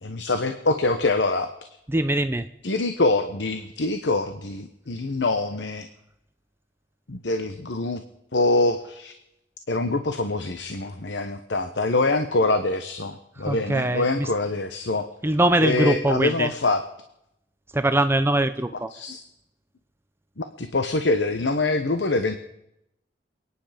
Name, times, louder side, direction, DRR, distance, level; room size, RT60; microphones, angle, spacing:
voice 1, 0.0-1.5 2.6-5.9 7.1-8.0 8.3-9.1 9.7-15.1 15.6-16.8 18.9-19.2 20.4-22.4, left 2 dB, 90° left, 8 dB, 1.1 m, -24 dB
voice 2, 1.9-2.4 13.4-14.3 15.2-16.5 17.7-18.9, right 1 dB, 15° right, 9 dB, 0.6 m, -22 dB
28.0 x 10.0 x 5.1 m, 0.81 s
head